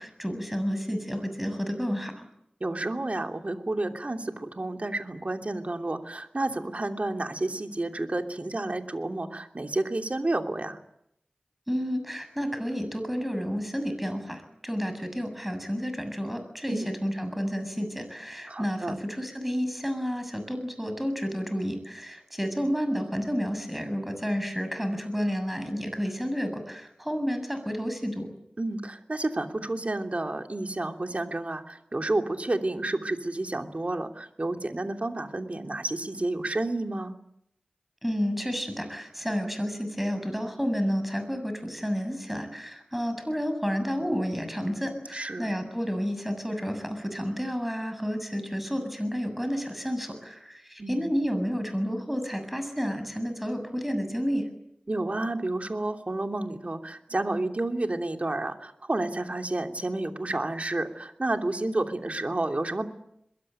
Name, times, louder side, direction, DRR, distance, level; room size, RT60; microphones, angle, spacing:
voice 1, 0.0-2.3 11.7-28.3 38.0-54.5, equal, 5° right, 8 dB, 7.3 m, -30 dB
voice 2, 2.6-10.8 16.7-16.9 18.5-18.9 28.6-37.2 45.1-45.5 50.8-51.1 54.9-62.9, right 2 dB, 50° right, 4 dB, 3.0 m, -30 dB
23.0 x 22.5 x 9.1 m, 0.76 s
wide cardioid pair, 55°, 3 cm